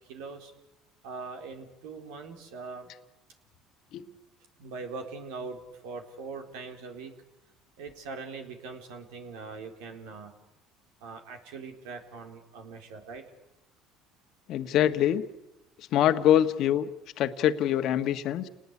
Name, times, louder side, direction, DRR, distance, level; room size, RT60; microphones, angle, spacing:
voice 1, 0.1-0.5 1.0-2.9 4.6-7.1 7.8-10.3 11.0-13.2, right 4 dB, 85° right, 5 dB, 4.1 m, -41 dB
voice 2, 14.5-15.2 15.8-16.9 17.2-18.5, left 11 dB, 65° left, 9 dB, 1.5 m, -24 dB
29.0 x 19.5 x 10.0 m, 0.94 s
supercardioid pair, 90°, 0 cm